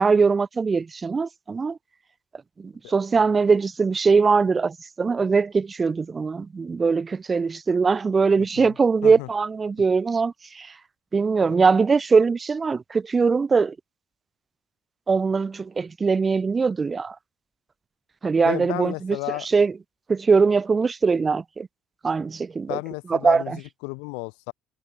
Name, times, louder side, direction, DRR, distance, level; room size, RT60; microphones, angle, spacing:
voice 1, 0.0-1.8 2.6-10.7 11.1-13.7 15.1-17.2 18.2-19.2 19.5-19.7 20.1-21.7 22.0-22.8 23.1-23.6, right 4 dB, 35° right, 0.7 m, -21 dB
voice 2, 2.8-3.2 8.4-8.7 9.0-9.3 11.4-11.6 18.4-19.5 22.7-24.5, left 40 dB or more, 70° left, 2.3 m, -33 dB
figure-of-eight pair, 50°, 0 cm